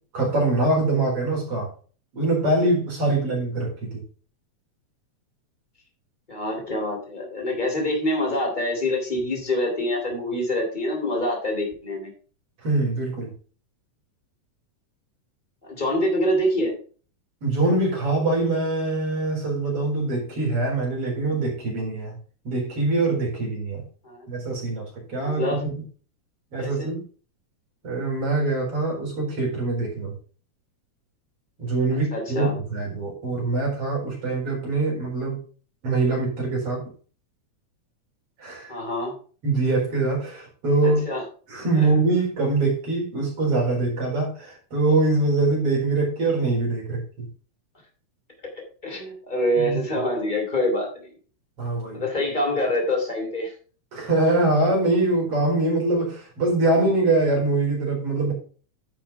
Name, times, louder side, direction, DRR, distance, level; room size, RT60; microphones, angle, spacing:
voice 1, 0.1-1.7 2.1-4.0 12.6-13.3 17.4-22.2 22.4-23.8 24.3-24.8 25.1-25.7 26.5-27.0 27.8-30.1 31.6-35.4 35.8-36.9 38.4-38.7 39.4-41.1 41.5-47.3 49.6-49.8 51.6-52.0 53.9-58.3, right 2 dB, 50° right, 4.9 m, -23 dB
voice 2, 6.3-12.1 15.6-16.8 24.0-24.2 25.2-25.6 26.6-26.9 32.1-32.5 38.7-39.1 40.8-41.2 41.8-41.9 48.8-51.1 51.9-53.5, left 1 dB, 15° left, 3.3 m, -25 dB
10.5 x 6.0 x 4.7 m
omnidirectional pair, 3.3 m